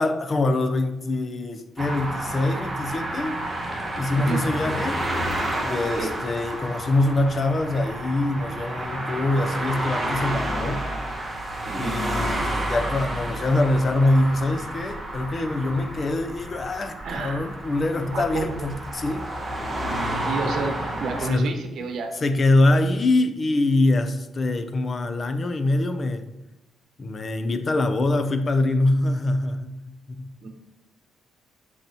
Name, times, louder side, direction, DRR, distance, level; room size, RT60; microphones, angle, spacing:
voice 1, 0.0-3.4 4.0-5.0 5.6-10.8 11.7-19.2 21.2-21.5 22.2-26.2 27.0-30.3, left 2 dB, 35° left, 9 dB, 0.7 m, -24 dB
sound 1, 1.8-21.3, right 1 dB, 20° right, 1.5 m, -30 dB
voice 2, 11.6-12.0 17.0-17.5 18.1-18.7 20.3-22.1 30.4-30.5, right 4 dB, 65° right, 5 dB, 1.1 m, -30 dB
7.8 x 5.9 x 3.0 m, 0.97 s
cardioid pair, 90°, 0 cm